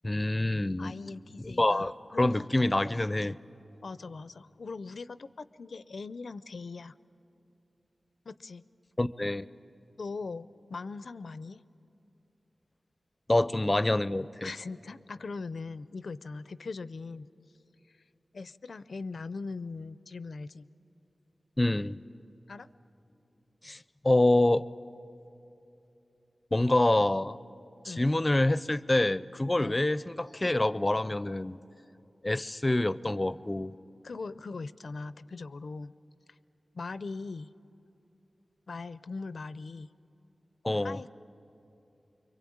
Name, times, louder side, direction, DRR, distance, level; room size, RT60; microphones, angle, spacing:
voice 1, 0.0-0.9 1.4-3.4 9.0-9.5 13.3-14.5 21.6-22.0 23.6-23.8 24.0-24.6 26.5-27.4 27.8-31.6 32.2-33.7 40.6-41.0, left 1 dB, 25° left, 17 dB, 0.5 m, -26 dB
voice 2, 0.8-2.7 3.8-6.9 8.3-8.6 10.0-11.6 14.4-17.3 18.3-20.7 22.5-22.7 27.8-28.1 29.6-29.8 34.0-35.9 36.7-37.5 38.7-39.9 40.8-41.1, left 4 dB, 80° left, 15 dB, 0.5 m, -40 dB
25.5 x 23.0 x 8.7 m, 2.9 s
wide cardioid pair, 80°, 0 cm